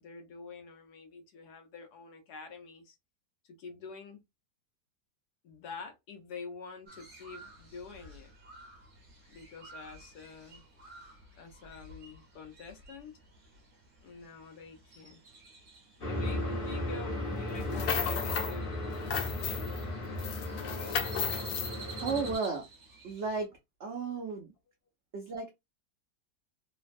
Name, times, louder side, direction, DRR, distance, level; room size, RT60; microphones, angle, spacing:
voice 1, 0.0-3.0 3.4-4.2 5.4-8.3 9.3-10.6 11.4-13.1 14.0-15.2 16.1-18.8 19.2-19.7, left 5 dB, 70° left, 1.2 m, -47 dB
Crow, 6.9-23.4, right 3 dB, 40° right, 0.9 m, -52 dB
sound 1, 16.0-22.4, left 1 dB, 40° left, 0.9 m, -35 dB
sound 2, 17.6-18.6 18.9-19.8 20.2-21.7, left 8 dB, 90° left, 1.3 m, -34 dB
voice 2, 22.0-22.7 23.0-23.5 23.8-24.5 25.1-25.5, right 4 dB, 75° right, 0.6 m, -33 dB
3.2 x 2.1 x 2.5 m
omnidirectional pair, 1.9 m